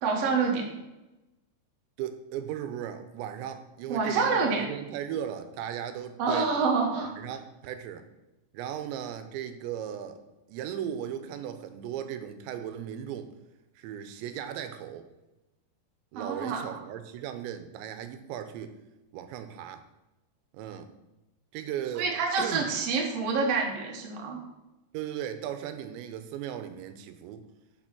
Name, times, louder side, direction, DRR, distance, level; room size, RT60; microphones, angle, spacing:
voice 1, 0.0-0.7 3.9-4.7 6.2-7.1 16.1-16.7 21.9-24.4, right 4 dB, 60° right, 0 dB, 1.7 m, -27 dB
voice 2, 2.0-6.5 7.2-8.1 8.5-10.2 10.5-13.3 13.8-15.0 16.1-18.7 19.1-19.8 20.5-20.9 21.5-22.1 22.4-22.7 24.9-27.4, right 10 dB, 85° right, 9 dB, 2.9 m, -37 dB
6.6 x 6.1 x 6.0 m, 1.0 s
omnidirectional pair, 5.1 m